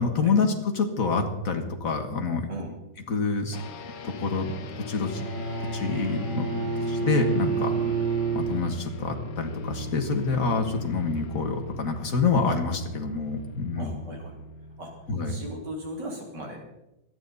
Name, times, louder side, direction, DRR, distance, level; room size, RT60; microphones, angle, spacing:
voice 1, 0.0-2.5 3.1-3.6 4.0-4.5 4.9-5.3 5.6-6.5 6.8-7.7 8.3-14.0 15.1-15.4, left 4 dB, 50° left, 5 dB, 1.9 m, -27 dB
sound 1, 3.5-15.7, left 1 dB, 85° left, 1.8 m, -39 dB
Bowed string instrument, 5.0-9.1, right 5 dB, 90° right, 3.7 m, -29 dB
voice 2, 13.8-14.4 14.8-14.9 15.3-16.6, right 1 dB, 65° right, 0 dB, 3.5 m, -37 dB
25.0 x 9.3 x 4.1 m, 0.90 s
omnidirectional pair, 2.0 m